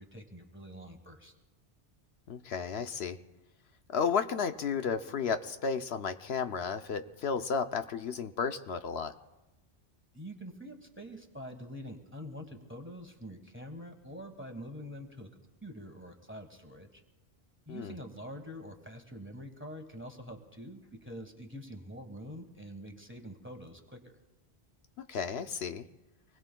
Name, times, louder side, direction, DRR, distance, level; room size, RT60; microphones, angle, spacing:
voice 1, 0.0-1.3 10.1-15.3 15.6-17.0 17.7-24.2, equal, 10° right, 5 dB, 1.3 m, -45 dB
voice 2, 2.3-3.2 3.9-9.1 17.7-17.9 25.1-25.8, left 6 dB, 70° left, 8 dB, 0.9 m, -33 dB
25.5 x 20.5 x 2.2 m, 1.0 s
omnidirectional pair, 1.1 m